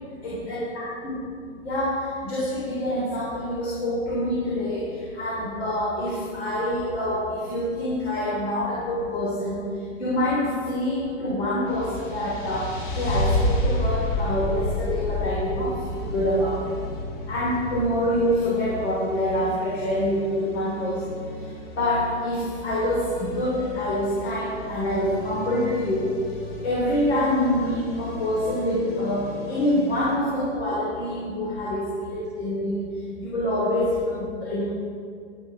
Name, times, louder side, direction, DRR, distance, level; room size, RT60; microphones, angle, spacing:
voice 1, 0.2-1.2 1.6-9.6 10.0-16.7 17.3-21.2 21.8-26.1 26.6-32.8 33.2-34.6, left 1 dB, 55° left, -6 dB, 3.3 m, -26 dB
sound 1, 11.7-30.2, left 1 dB, 40° left, 1.6 m, -32 dB
12.0 x 10.0 x 4.9 m, 2.2 s
supercardioid pair, 180°, 37 cm